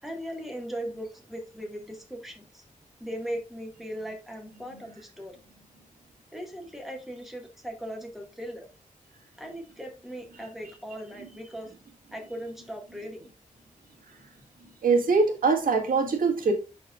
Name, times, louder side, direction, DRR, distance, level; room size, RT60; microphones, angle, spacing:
voice 1, 0.0-2.6 3.0-5.4 6.3-8.7 9.4-11.8 12.1-13.3, equal, ahead, 2 dB, 1.9 m, -38 dB
voice 2, 14.8-16.5, right 4 dB, 80° right, 3 dB, 1.8 m, -23 dB
11.5 x 4.4 x 2.5 m, 0.31 s
wide cardioid pair, 140°, 14 cm